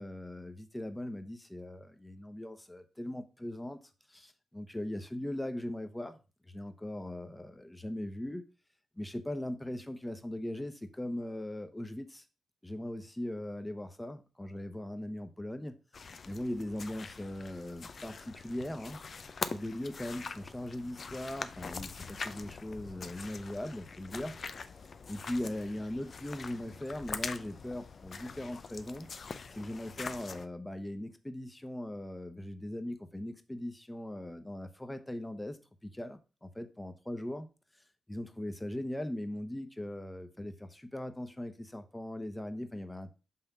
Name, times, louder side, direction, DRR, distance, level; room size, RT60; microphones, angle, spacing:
voice 1, 0.0-3.8 4.1-6.2 6.5-8.4 9.0-12.2 12.6-15.8 16.3-24.3 25.1-29.1 29.5-35.6 35.8-37.5 38.1-43.1, left 1 dB, 10° left, 1.0 m, -39 dB
sound 1, 15.9-30.5, left 5 dB, 55° left, 0.5 m, -43 dB
5.7 x 3.5 x 5.6 m
supercardioid pair, 55°, 0 cm